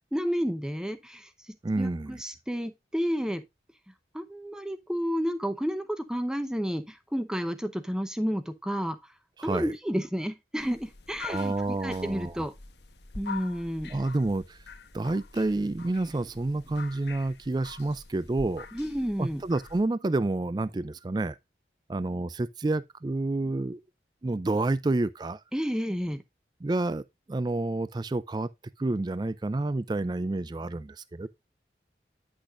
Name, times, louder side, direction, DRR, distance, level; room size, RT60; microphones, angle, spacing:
voice 1, 0.1-1.3 1.8-3.4 4.1-9.0 9.4-12.5 13.2-13.9 18.7-19.4 25.5-26.2, equal, 5° right, 0.7 m, -31 dB
voice 2, 1.6-2.2 9.4-9.7 11.2-12.5 13.9-14.6 14.9-18.7 19.2-21.4 21.9-23.8 24.2-25.4 26.6-27.0 27.3-28.5 28.8-31.3, right 2 dB, 25° right, 0.3 m, -29 dB
sound 1, 10.6-19.8, left 4 dB, 75° left, 1.1 m, -45 dB
9.9 x 6.3 x 2.4 m
head